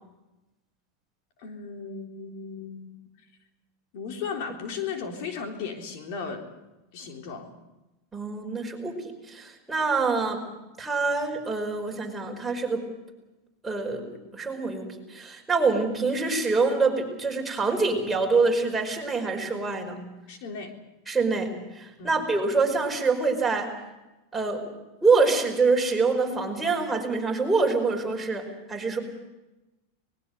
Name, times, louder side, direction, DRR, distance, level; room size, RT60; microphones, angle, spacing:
voice 1, 1.4-3.1 3.9-6.5 6.9-7.5 20.3-20.7 22.0-22.2, left 5 dB, 60° left, 3 dB, 3.6 m, -36 dB
voice 2, 8.1-9.0 9.3-10.4 10.8-12.8 13.6-20.0 21.1-23.7 24.3-24.7 25.0-29.0, right 4 dB, 10° right, 0 dB, 5.1 m, -25 dB
24.0 x 20.5 x 6.7 m, 1.0 s
supercardioid pair, 130°, 0 cm